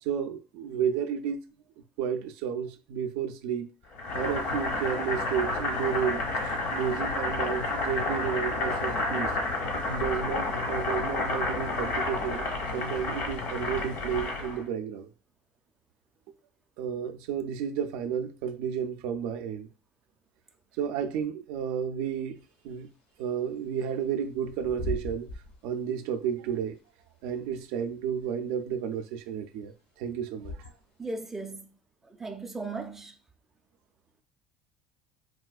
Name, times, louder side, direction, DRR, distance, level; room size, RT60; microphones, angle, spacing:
voice 1, 0.0-1.4 2.0-3.7 4.1-9.3 9.8-12.5 12.7-15.1 16.8-19.7 20.8-22.4 22.6-22.9 23.2-25.3 25.6-26.8 27.2-29.7 30.0-30.7, right 8 dB, 80° right, 0.3 m, -32 dB
Boiling, 4.0-14.6, left 2 dB, 70° left, 1.0 m, -30 dB
Bird / Wind, 22.4-31.1, left 1 dB, 85° left, 1.6 m, -43 dB
voice 2, 31.0-31.8 32.0-33.2, right 3 dB, 10° right, 0.4 m, -37 dB
4.1 x 2.3 x 2.2 m
cardioid pair, 125°, 3 cm